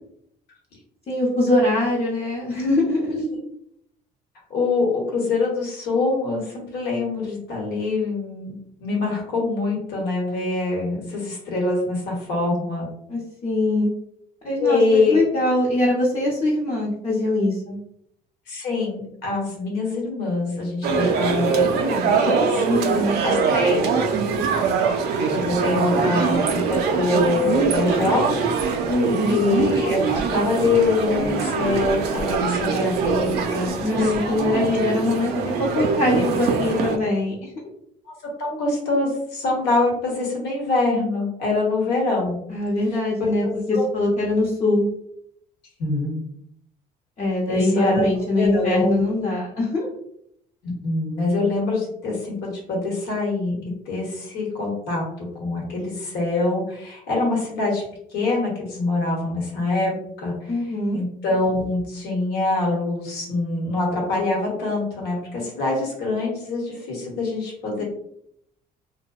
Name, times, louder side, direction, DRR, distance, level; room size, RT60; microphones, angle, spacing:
voice 1, 1.1-3.1 13.1-13.9 14.4-17.8 22.7-23.2 28.9-29.4 33.8-37.5 42.5-44.9 47.2-49.9 60.5-61.0 67.8-67.9, left 2 dB, 35° left, -5 dB, 0.7 m, -22 dB
voice 2, 4.5-8.5 8.8-12.9 14.6-15.2 18.5-22.7 23.2-23.9 25.3-28.4 29.3-34.1 38.1-42.4 43.2-43.8 45.8-46.2 47.5-48.0 48.3-49.0 50.6-53.5 53.9-57.8 58.1-59.9 60.2-60.5 60.9-67.8, left 3 dB, 80° left, -2 dB, 1.0 m, -24 dB
sound 1, 20.8-37.0, right 5 dB, 75° right, 0.4 m, -23 dB
2.6 x 2.1 x 2.3 m, 0.72 s
cardioid pair, 110°, 17 cm